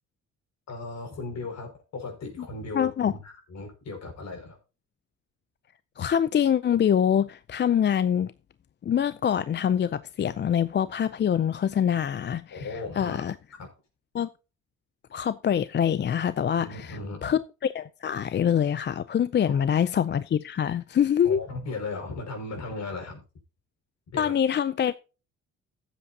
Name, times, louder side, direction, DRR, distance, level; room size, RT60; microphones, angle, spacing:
voice 1, 0.7-4.6 12.5-13.2 13.6-13.7 16.6-17.4 19.5-19.9 21.2-23.2 24.1-24.3, left 3 dB, 60° left, 5.7 m, -37 dB
voice 2, 2.7-3.1 6.0-8.3 8.8-13.4 14.1-14.3 15.1-21.4 24.2-24.9, left 9 dB, 35° left, 0.5 m, -25 dB
15.0 x 8.1 x 2.8 m
cardioid pair, 90°, 30 cm